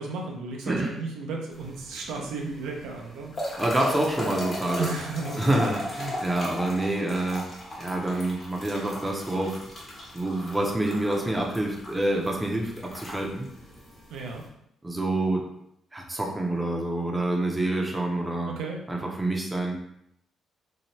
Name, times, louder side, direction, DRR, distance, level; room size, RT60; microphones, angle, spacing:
voice 1, 0.0-3.3 4.8-5.6 14.1-14.4 18.5-18.8, right 3 dB, 85° right, 0 dB, 0.5 m, -34 dB
sound 1, 1.5-14.5, left 1 dB, 40° left, 1.1 m, -38 dB
voice 2, 3.6-4.9 5.4-7.5 7.8-9.6 10.1-13.5 14.8-15.4 15.9-18.5 18.9-19.8, right 1 dB, 15° right, 0 dB, 0.6 m, -27 dB
2.7 x 2.1 x 3.1 m, 0.75 s
cardioid pair, 90°, 0 cm